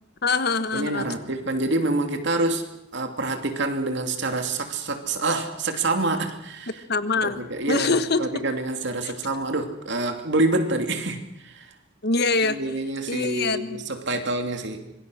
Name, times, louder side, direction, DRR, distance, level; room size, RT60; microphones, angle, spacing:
voice 1, 0.2-1.1 6.9-8.3 12.0-12.6 13.1-13.8, left 3 dB, 55° left, 11 dB, 1.3 m, -24 dB
voice 2, 0.7-2.6 2.9-6.7 7.2-11.7 12.4-14.9, right 2 dB, 65° right, 5 dB, 2.7 m, -27 dB
26.0 x 22.5 x 6.3 m, 0.87 s
head